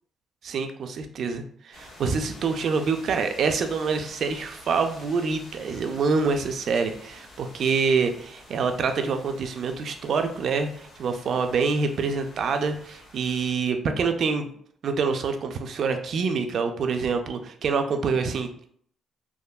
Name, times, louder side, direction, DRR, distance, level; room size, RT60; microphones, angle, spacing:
voice 1, 0.4-14.5 14.8-18.7, right 5 dB, 60° right, 7 dB, 0.4 m, -26 dB
sound 1, 1.7-13.5, left 1 dB, 60° left, 1.3 m, -49 dB
3.5 x 2.1 x 2.3 m, 0.62 s
cardioid pair, 90°, 0 cm